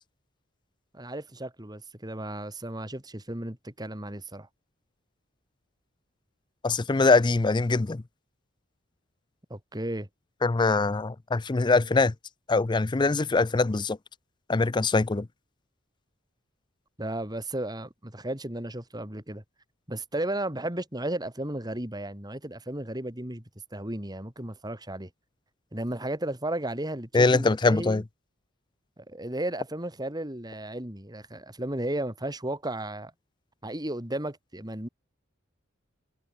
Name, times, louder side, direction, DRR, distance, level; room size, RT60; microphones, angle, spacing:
voice 1, 0.9-4.5 9.5-10.1 17.0-19.4 19.9-23.4 23.7-25.1 25.7-28.0 29.0-33.1 33.6-34.9, right 1 dB, 20° right, 3.6 m, -34 dB
voice 2, 6.6-8.0 10.4-12.1 12.5-14.0 14.5-15.3 27.1-28.0, left 3 dB, 20° left, 0.4 m, -23 dB
head